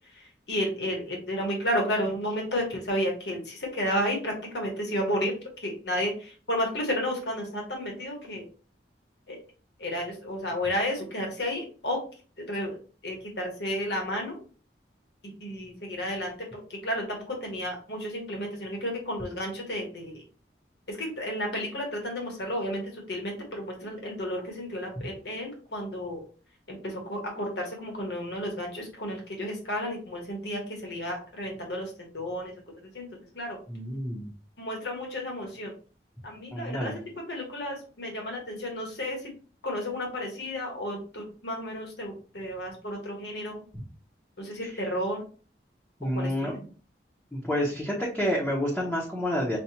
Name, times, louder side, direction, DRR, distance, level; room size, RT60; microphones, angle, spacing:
voice 1, 0.1-8.5 9.3-9.4 9.8-12.0 12.4-12.8 13.0-14.4 15.2-20.2 20.9-26.2 26.7-32.5 32.9-33.1 33.3-33.6 34.6-35.7 36.2-39.3 39.6-43.6 44.4-45.2 46.1-46.5, equal, 70° left, 1 dB, 1.3 m, -32 dB
voice 2, 33.7-34.3 36.5-37.0 46.0-46.6 47.3-49.6, equal, 5° left, -4 dB, 0.8 m, -29 dB
5.6 x 2.3 x 2.8 m, 0.38 s
head